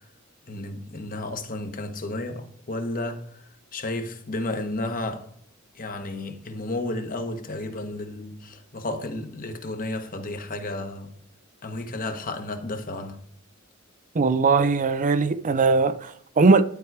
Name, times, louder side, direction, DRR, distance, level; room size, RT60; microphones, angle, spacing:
voice 1, 0.5-3.4 3.7-5.3 5.7-11.2 11.6-13.2, left 2 dB, 45° left, 1.2 m, -32 dB
voice 2, 14.1-16.6, right 4 dB, 40° right, 0.5 m, -20 dB
11.5 x 4.6 x 4.7 m
head